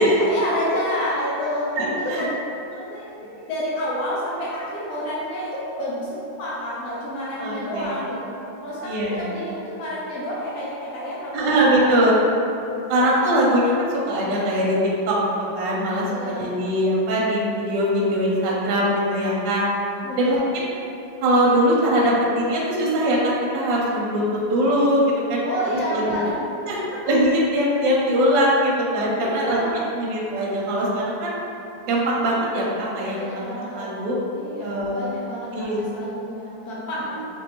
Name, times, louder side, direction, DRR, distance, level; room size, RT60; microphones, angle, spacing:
voice 1, 0.0-1.8 2.1-2.3 2.7-8.3 8.6-12.0 16.1-16.5 20.0-20.4 25.4-26.3 29.2-29.8 33.1-33.9 34.3-37.2, equal, 75° left, -7 dB, 0.9 m, -29 dB
voice 2, 1.8-2.2 7.4-8.0 8.8-9.3 11.3-12.1 12.9-15.2 15.5-19.6 20.2-20.7 21.2-25.5 25.9-26.2 26.7-26.8 27.1-29.6 29.9-31.3 31.9-33.4 33.8-34.2 34.6-35.0 35.5-35.8 37.1-37.2, equal, 75° right, -4 dB, 1.2 m, -21 dB
3.1 x 2.6 x 2.8 m, 2.8 s
omnidirectional pair, 2.1 m